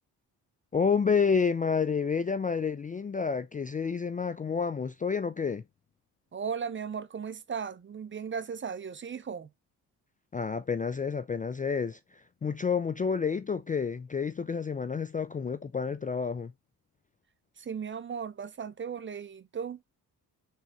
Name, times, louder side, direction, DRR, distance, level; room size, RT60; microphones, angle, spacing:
voice 1, 0.7-5.6 10.3-16.5, left 5 dB, 20° left, 0.3 m, -29 dB
voice 2, 6.3-9.5 17.6-19.8, right 6 dB, 30° right, 0.5 m, -36 dB
3.6 x 3.4 x 4.1 m
supercardioid pair, 55°, 42 cm